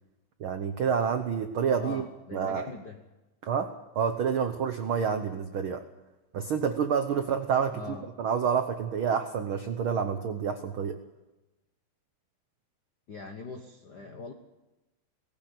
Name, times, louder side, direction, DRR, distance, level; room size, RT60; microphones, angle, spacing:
voice 1, 0.4-2.1 2.3-2.6 3.4-3.7 3.9-5.8 6.3-11.0, right 7 dB, 85° right, 8 dB, 1.1 m, -28 dB
voice 2, 1.8-3.0 7.7-8.1 13.1-14.3, left 4 dB, 70° left, 5 dB, 1.0 m, -41 dB
19.5 x 16.5 x 8.2 m, 1.1 s
omnidirectional pair, 3.8 m